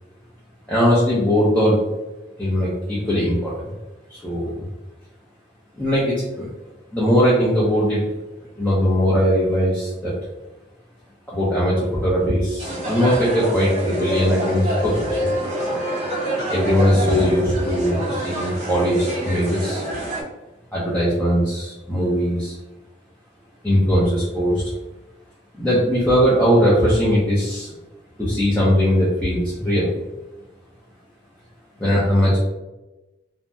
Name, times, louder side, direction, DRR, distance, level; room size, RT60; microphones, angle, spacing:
voice 1, 0.7-1.8 2.4-3.7 4.1-4.7 5.8-6.5 6.9-8.0 8.6-10.1 11.3-15.3 16.5-19.9 20.7-22.6 23.6-24.7 25.6-27.7 28.2-29.9 31.8-32.4, equal, 5° left, -8 dB, 0.5 m, -20 dB
sound 1, 12.6-20.2, right 1 dB, 40° right, 0.6 m, -26 dB
2.6 x 2.0 x 3.3 m, 1.0 s
head